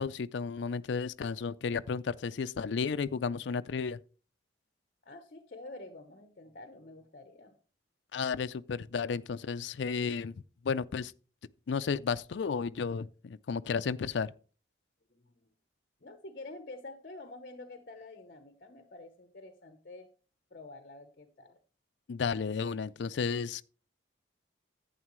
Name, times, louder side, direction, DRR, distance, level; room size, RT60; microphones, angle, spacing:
voice 1, 0.0-4.0 8.1-10.3 10.6-11.1 11.7-14.3 22.1-23.6, left 5 dB, 70° left, 0.4 m, -33 dB
voice 2, 5.0-7.6 15.1-15.5 16.0-20.1 20.5-21.6, left 2 dB, 50° left, 0.9 m, -48 dB
11.0 x 8.8 x 3.1 m
head